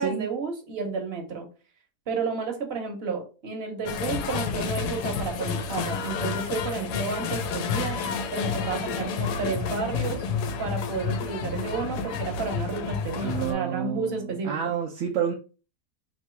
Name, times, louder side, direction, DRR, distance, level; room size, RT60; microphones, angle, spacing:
voice 1, 0.0-1.5 2.1-8.0 8.3-10.2 10.6-14.5, right 4 dB, 45° right, 3 dB, 1.0 m, -31 dB
sound 1, 3.9-13.5, left 5 dB, 80° left, 1.1 m, -30 dB
voice 2, 13.2-15.3, right 8 dB, 65° right, 0 dB, 0.7 m, -29 dB
3.0 x 2.7 x 4.5 m, 0.35 s
omnidirectional pair, 1.8 m